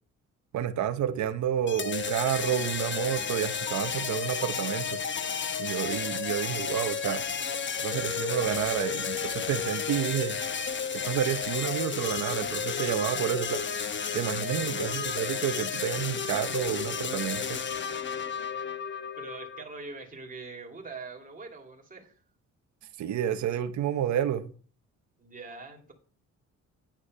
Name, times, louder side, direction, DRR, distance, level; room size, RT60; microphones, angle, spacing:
voice 1, 0.5-5.0 5.6-7.2 7.8-10.4 10.9-13.6 14.1-17.6 23.0-24.5, right 10 dB, 70° right, 0.9 m, -30 dB
sound 1, 1.7-19.6, left 6 dB, 40° left, 1.0 m, -32 dB
voice 2, 14.8-15.2 19.2-22.2 25.2-25.9, right 3 dB, 25° right, 2.9 m, -43 dB
10.0 x 6.2 x 5.5 m
cardioid pair, 90°, 30 cm